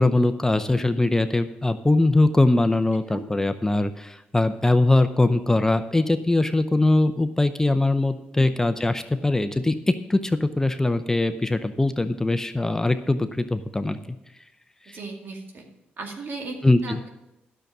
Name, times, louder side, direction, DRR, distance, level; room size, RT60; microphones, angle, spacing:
voice 1, 0.0-14.0 14.9-15.0 16.6-17.0, left 2 dB, 15° left, 10 dB, 0.6 m, -21 dB
voice 2, 14.9-15.6 16.0-16.6 16.8-17.1, right 3 dB, 60° right, 2 dB, 2.1 m, -36 dB
10.5 x 6.7 x 6.1 m, 0.90 s
cardioid pair, 75°, 4 cm